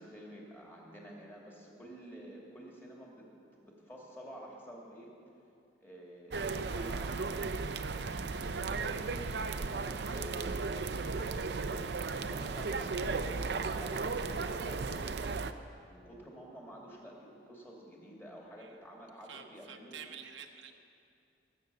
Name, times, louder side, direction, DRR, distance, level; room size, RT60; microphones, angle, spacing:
voice 1, 0.0-3.3 3.6-5.1 5.8-7.8 8.2-11.3 11.8-15.4 15.8-20.0, equal, 15° left, -3 dB, 2.5 m, -50 dB
sound 1, 6.3-15.5, right 4 dB, 65° right, 0.6 m, -35 dB
voice 2, 19.2-20.7, right 7 dB, 85° right, 4 dB, 1.1 m, -49 dB
18.5 x 8.0 x 6.9 m, 2.5 s
head